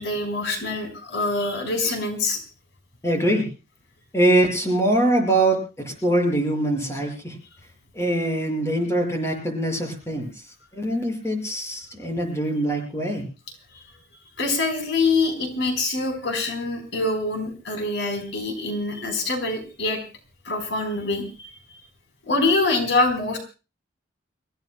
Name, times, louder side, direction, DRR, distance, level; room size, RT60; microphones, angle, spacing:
voice 1, 0.0-2.4 13.7-13.8 14.4-20.0 20.4-21.5 22.3-23.4, left 3 dB, 70° left, 5 dB, 4.0 m, -25 dB
voice 2, 3.0-3.5 4.1-7.4 8.0-10.3 10.7-13.2, right 1 dB, 15° left, 2 dB, 5.9 m, -23 dB
30.0 x 16.0 x 2.2 m, 0.32 s
head